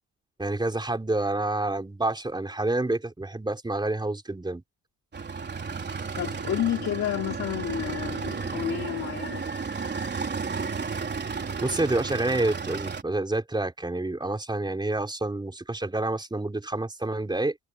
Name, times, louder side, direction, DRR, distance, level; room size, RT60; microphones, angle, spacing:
voice 1, 0.4-4.6 11.6-17.6, right 2 dB, 15° right, 4.2 m, -28 dB
sound 1, 5.1-13.0, right 5 dB, 35° right, 3.6 m, -33 dB
voice 2, 6.1-9.4, left 11 dB, 65° left, 3.0 m, -30 dB
cardioid pair, 90°, 30 cm